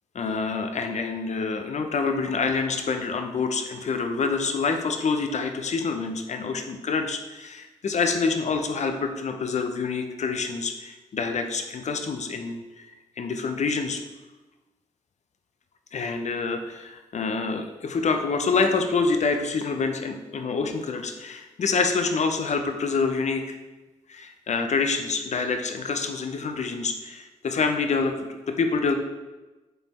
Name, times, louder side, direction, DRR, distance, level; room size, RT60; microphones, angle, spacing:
voice 1, 0.1-14.0 15.9-23.6 24.1-29.0, left 4 dB, 60° left, 6 dB, 0.8 m, -27 dB
6.7 x 4.3 x 4.2 m, 1.2 s
supercardioid pair, 50°, 13 cm